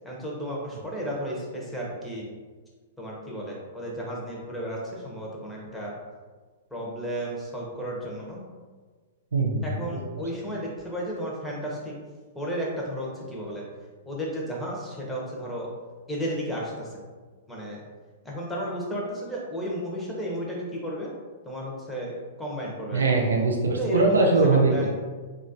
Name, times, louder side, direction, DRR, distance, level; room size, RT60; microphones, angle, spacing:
voice 1, 0.0-2.3 3.0-5.9 6.7-8.4 9.6-11.9 12.3-13.6 14.1-15.7 16.1-17.0 17.5-17.8 18.2-21.2 21.4-22.1 22.4-23.0 23.8-24.3 24.7-24.9, equal, 5° left, -4 dB, 0.8 m, -33 dB
voice 2, 9.3-9.8 22.9-24.9, right 3 dB, 90° right, 0 dB, 0.5 m, -21 dB
2.9 x 2.4 x 2.7 m, 1.4 s
hypercardioid pair, 120°, 0 cm